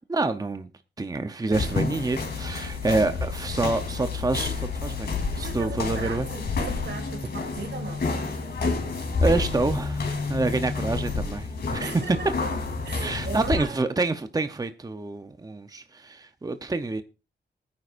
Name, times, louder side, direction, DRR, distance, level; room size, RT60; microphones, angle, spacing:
voice 1, 0.1-0.7 1.0-5.1 5.4-6.3 9.2-12.2 13.0-17.0, right 3 dB, 20° right, 0.8 m, -27 dB
sound 1, 1.5-13.6, left 4 dB, 65° left, 3.4 m, -29 dB
voice 2, 5.4-8.1 11.8-12.3 12.8-13.8, right 4 dB, 80° right, 3.1 m, -38 dB
20.5 x 9.6 x 2.6 m
wide cardioid pair, 100°, 18 cm